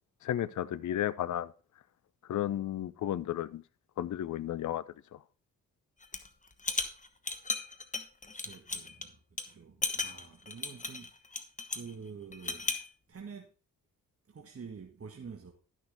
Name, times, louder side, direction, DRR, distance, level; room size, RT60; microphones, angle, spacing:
voice 1, 0.2-1.5 2.3-3.6 4.0-4.8 5.1-5.2, left 12 dB, 45° left, 0.6 m, -33 dB
sound 1, 6.0-6.3 6.6-9.0 9.4-9.5 9.8-11.9 12.3-12.9, left 3 dB, 20° left, 1.3 m, -35 dB
voice 2, 8.2-11.4 11.7-12.7 13.1-13.5 14.3-15.5, right 6 dB, 35° right, 1.5 m, -48 dB
11.5 x 6.4 x 3.9 m
hypercardioid pair, 40°, 41 cm